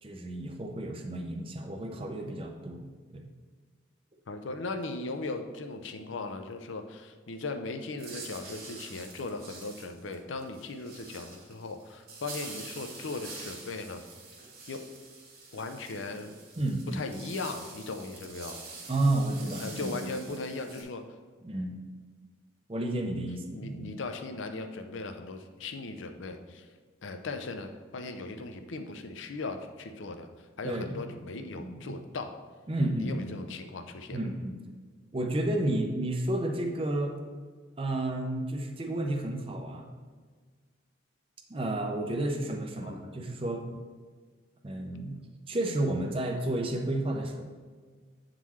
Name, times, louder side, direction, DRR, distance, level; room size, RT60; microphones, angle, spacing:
voice 1, 0.0-3.3 16.6-17.0 18.9-20.2 21.4-21.8 22.7-23.9 30.6-31.2 31.5-32.0 32.7-33.4 34.1-34.6 35.1-37.1 37.8-39.9 41.5-43.6 44.6-45.2 45.5-47.4, right 1 dB, 30° right, 3 dB, 0.5 m, -31 dB
voice 2, 4.3-14.0 14.7-14.8 15.5-16.4 16.9-18.6 19.6-21.0 23.5-26.7 27.0-30.3 30.6-32.4 33.0-34.2 42.8-43.0, left 3 dB, 75° left, 6 dB, 0.5 m, -38 dB
sound 1, 8.0-20.8, right 3 dB, 50° right, 1.3 m, -46 dB
8.4 x 3.8 x 3.1 m, 1.5 s
head